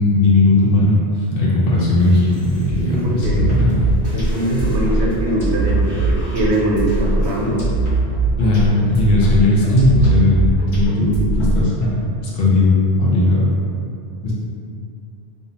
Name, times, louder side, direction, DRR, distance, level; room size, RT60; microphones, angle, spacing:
voice 1, 0.0-3.8 8.4-10.4 10.7-12.0 12.3-13.5 14.2-14.3, left 2 dB, 65° left, -6 dB, 0.7 m, -16 dB
sound 1, 1.9-7.5, equal, 30° left, 1.0 m, -34 dB
sound 2, 2.5-10.1, right 4 dB, 60° right, 0.5 m, -37 dB
voice 2, 2.9-3.4 4.1-7.6, right 1 dB, 85° right, -3 dB, 0.9 m, -21 dB
sound 3, 3.2-11.9, right 2 dB, 80° left, 1.2 m, -20 dB
2.6 x 2.0 x 2.8 m, 2.5 s
omnidirectional pair, 1.2 m